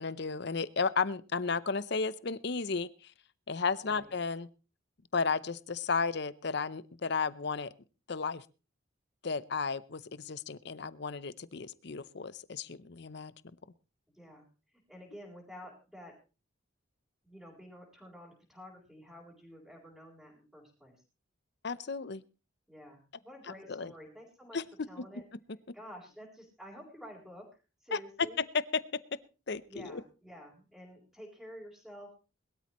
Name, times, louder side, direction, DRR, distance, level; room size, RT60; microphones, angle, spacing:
voice 1, 0.0-3.1 3.5-4.5 5.1-7.7 8.1-8.4 9.2-13.3 21.6-22.2 23.7-23.9 24.5-25.0 27.9-29.2 29.5-30.0, left 4 dB, 55° left, 17 dB, 0.7 m, -33 dB
voice 2, 14.1-16.1 17.2-21.0 22.7-24.6 24.9-25.2 25.7-28.4 29.7-32.2, equal, ahead, -7 dB, 4.1 m, -50 dB
21.5 x 12.5 x 3.1 m, 0.33 s
head